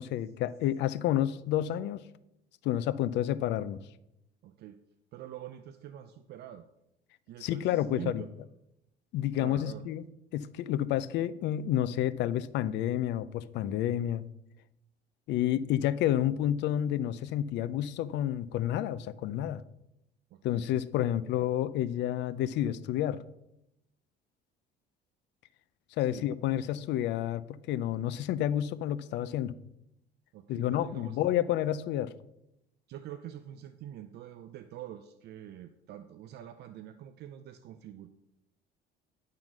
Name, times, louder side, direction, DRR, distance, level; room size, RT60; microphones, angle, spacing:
voice 1, 0.0-2.0 2.6-3.8 7.4-8.2 9.1-10.0 10.3-14.2 15.3-19.6 20.4-23.2 26.0-29.5 30.5-32.1, left 12 dB, 70° left, 16 dB, 0.5 m, -30 dB
voice 2, 4.4-4.8 5.1-6.7 7.3-8.3 9.3-9.8 20.3-20.7 21.0-21.1 26.0-26.3 30.3-31.2 32.9-38.1, right 11 dB, 60° right, 10 dB, 0.5 m, -45 dB
10.5 x 3.8 x 6.1 m, 0.83 s
cardioid pair, 120°, 19 cm